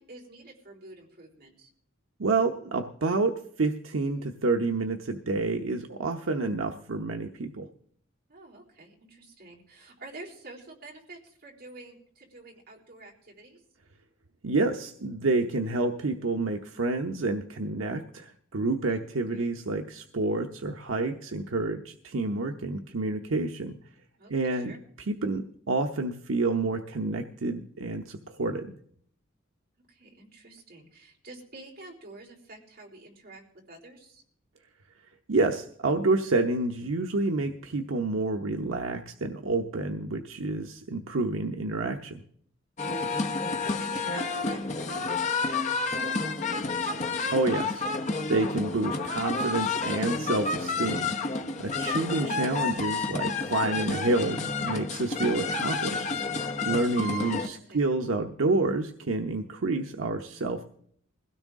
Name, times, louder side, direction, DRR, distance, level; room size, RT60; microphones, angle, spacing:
voice 1, 0.0-1.7 8.3-13.6 17.9-18.2 19.3-19.5 24.2-24.8 29.9-33.4 33.7-34.2 43.0-45.7 45.9-46.6 56.6-57.8, right 2 dB, 50° right, -2 dB, 3.9 m, -49 dB
voice 2, 2.2-7.7 14.4-23.8 24.3-24.7 25.1-28.7 35.3-42.2 47.3-47.8 48.3-51.1 51.6-56.1 56.6-60.6, right 3 dB, 80° right, 4 dB, 0.8 m, -28 dB
sound 1, 42.8-57.5, left 4 dB, 35° left, 0.9 m, -30 dB
21.5 x 16.5 x 3.6 m, 0.64 s
head